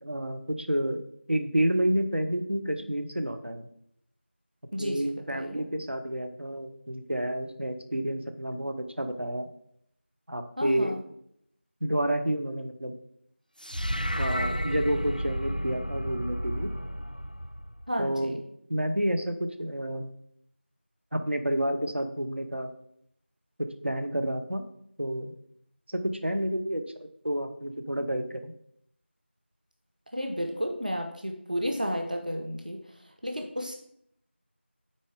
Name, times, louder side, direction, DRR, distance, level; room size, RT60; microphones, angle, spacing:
voice 1, 0.0-1.0 1.3-3.7 4.8-9.5 10.3-10.9 11.8-12.9 14.2-16.7 18.0-18.4 18.7-20.1 21.1-22.7 23.8-24.6 25.0-25.3 25.9-28.5, right 1 dB, 65° right, 6 dB, 0.9 m, -29 dB
voice 2, 4.7-5.6 10.6-11.0 17.9-18.4 30.1-32.8 33.2-33.8, equal, 45° right, 2 dB, 0.8 m, -32 dB
sound 1, 13.6-18.0, equal, 45° left, 0.3 m, -32 dB
8.8 x 4.3 x 4.8 m, 0.72 s
figure-of-eight pair, 180°, 6 cm